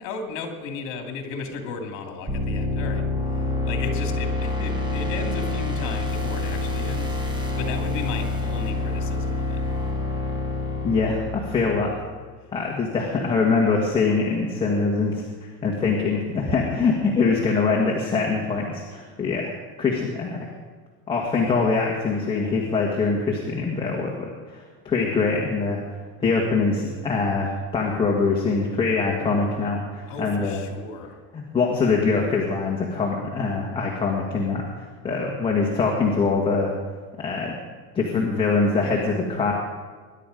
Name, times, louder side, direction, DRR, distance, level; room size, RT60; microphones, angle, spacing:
voice 1, 0.0-9.6 30.1-31.1, left 4 dB, 45° left, 4 dB, 2.6 m, -35 dB
sound 1, 2.3-12.1, left 2 dB, 10° right, 1.3 m, -27 dB
voice 2, 10.8-11.9 12.5-19.5 19.8-20.5 21.1-30.6 31.3-36.7 37.2-37.5 37.9-39.5, left 4 dB, 10° left, -2 dB, 1.5 m, -23 dB
21.5 x 11.0 x 5.2 m, 1.5 s
cardioid pair, 170°, 41 cm